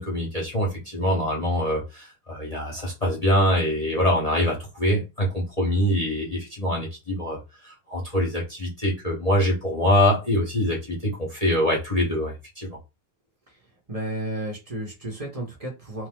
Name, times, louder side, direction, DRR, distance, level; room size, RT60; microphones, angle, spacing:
voice 1, 0.0-12.7, equal, 25° left, 0.8 m, -24 dB
voice 2, 13.9-16.1, right 1 dB, 20° right, 1.5 m, -32 dB
3.1 x 2.9 x 3.9 m
omnidirectional pair, 2.4 m